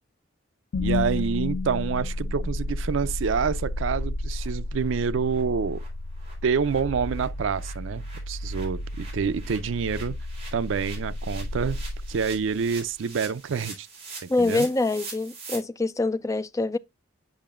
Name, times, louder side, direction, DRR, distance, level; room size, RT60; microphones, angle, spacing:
sound 1, 0.7-12.8, left 2 dB, 80° left, 0.5 m, -32 dB
voice 1, 0.8-5.8 6.4-10.2 10.5-11.8 12.1-13.9 14.2-14.7, right 6 dB, 75° right, 0.4 m, -27 dB
sound 2, 2.6-2.7 3.0-3.1 3.5-3.6 3.9-4.0 4.4-4.5 4.8-4.9 5.3-5.4 5.7-15.6, right 4 dB, 30° right, 3.7 m, -44 dB
voice 2, 14.3-16.8, left 2 dB, 15° left, 0.3 m, -25 dB
8.6 x 5.6 x 2.4 m
head